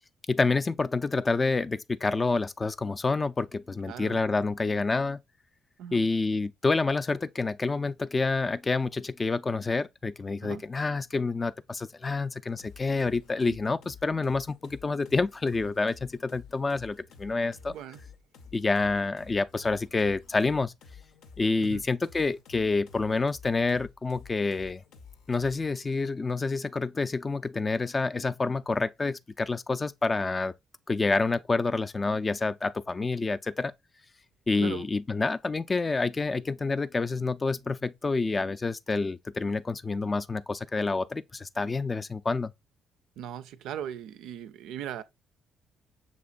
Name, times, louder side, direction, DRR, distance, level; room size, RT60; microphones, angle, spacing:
voice 1, 0.3-5.2 5.9-17.7 18.5-20.7 21.4-24.8 25.3-30.5 30.9-33.7 34.5-42.5, left 3 dB, 30° left, 0.3 m, -28 dB
voice 2, 3.9-4.2 5.8-6.1 10.4-10.6 13.5-13.6 17.7-18.0 21.6-21.8 34.6-34.9 43.2-45.0, right 10 dB, 80° right, 0.4 m, -39 dB
sound 1, 12.6-25.7, left 5 dB, 80° left, 0.6 m, -51 dB
6.3 x 2.9 x 2.4 m
cardioid pair, 75°, 0 cm